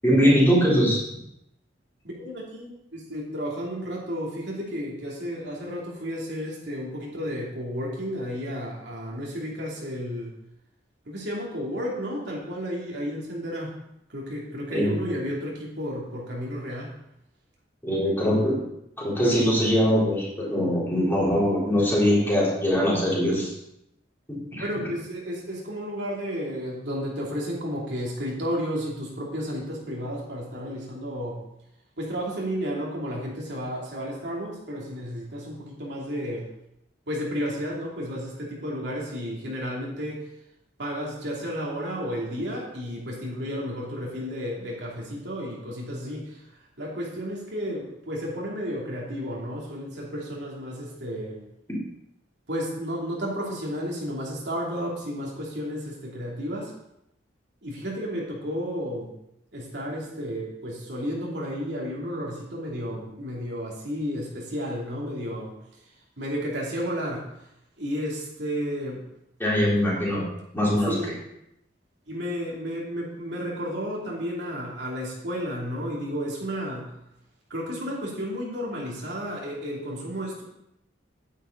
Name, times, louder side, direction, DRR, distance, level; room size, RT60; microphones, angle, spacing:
voice 1, 0.0-1.0 14.7-14.9 17.8-18.6 19.0-23.5 24.3-24.7 69.4-70.2 70.5-70.9, equal, 10° left, -6 dB, 3.7 m, -22 dB
voice 2, 2.2-10.3 11.0-13.7 14.1-16.9 24.5-31.4 32.0-36.5 37.1-40.2 40.8-51.4 52.5-56.7 57.6-59.1 59.5-65.5 66.2-67.5 67.8-69.0 70.8-71.1 72.1-76.9 77.5-80.4, equal, 65° right, -3 dB, 2.8 m, -32 dB
10.0 x 9.7 x 4.0 m, 0.81 s
head